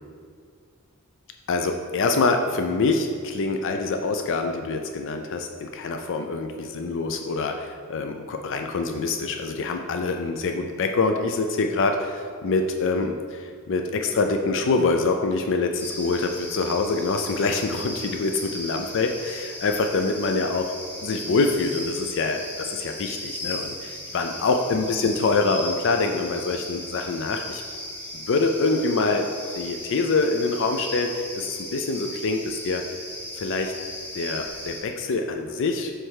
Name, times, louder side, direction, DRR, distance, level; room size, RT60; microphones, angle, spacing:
voice 1, 1.5-20.7 21.0-27.6 28.1-29.3 29.6-32.8 33.4-33.7 34.1-35.9, left 3 dB, 60° left, 5 dB, 0.4 m, -25 dB
sound 1, 15.8-34.8, left 1 dB, 10° left, 1.0 m, -37 dB
7.6 x 3.3 x 6.4 m, 2.1 s
head